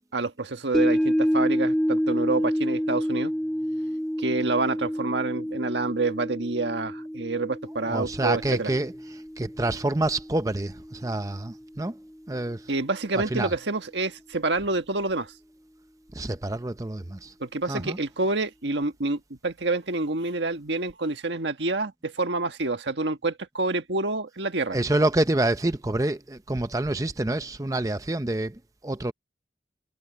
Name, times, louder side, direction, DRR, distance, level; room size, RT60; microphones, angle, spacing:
voice 1, 0.1-3.3 4.2-8.7 12.7-15.3 17.4-24.8, right 3 dB, 80° right, 1.6 m, -28 dB
sound 1, 0.7-11.1 11.5-11.6, equal, 5° left, 1.9 m, -28 dB
voice 2, 7.9-11.9 12.3-12.7 13.1-13.5 16.1-17.3 17.7-18.0 24.7-29.1, right 2 dB, 20° right, 0.6 m, -27 dB
head